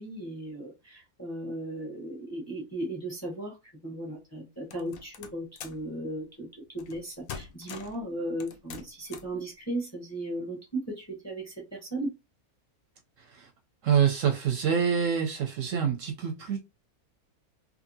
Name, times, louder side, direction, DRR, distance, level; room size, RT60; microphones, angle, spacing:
voice 1, 0.0-3.6 3.8-12.1, right 1 dB, 15° left, 0.6 m, -36 dB
sound 1, 4.7-5.9 6.8-7.0 7.3-8.0 8.4-9.4, left 6 dB, 70° left, 0.9 m, -43 dB
voice 2, 13.8-16.6, right 7 dB, 70° right, 0.8 m, -26 dB
2.6 x 2.6 x 2.6 m
omnidirectional pair, 1.6 m